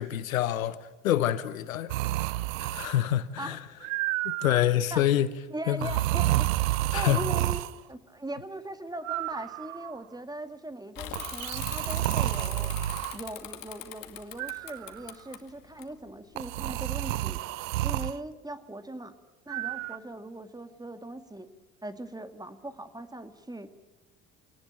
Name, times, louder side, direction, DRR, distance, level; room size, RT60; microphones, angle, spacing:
voice 1, 0.0-1.9 2.6-3.6 4.2-5.3 5.7-5.9 6.9-7.3, left 12 dB, 90° left, 1.0 m, -27 dB
sound 1, 1.9-3.1 3.8-4.7 5.8-7.8 9.0-10.0 11.1-13.2 14.4-15.1 16.4-18.2 19.5-20.0, right 16 dB, 80° right, 0.8 m, -30 dB
voice 2, 5.5-6.5 6.9-7.6 7.9-12.7 13.1-17.4 17.8-19.1 19.5-21.5 21.8-23.7, right 1 dB, 10° right, 2.1 m, -40 dB
Bicycle / Mechanisms, 10.9-16.4, left 12 dB, 55° left, 2.3 m, -42 dB
25.0 x 18.5 x 8.9 m
hypercardioid pair, 70°, 40 cm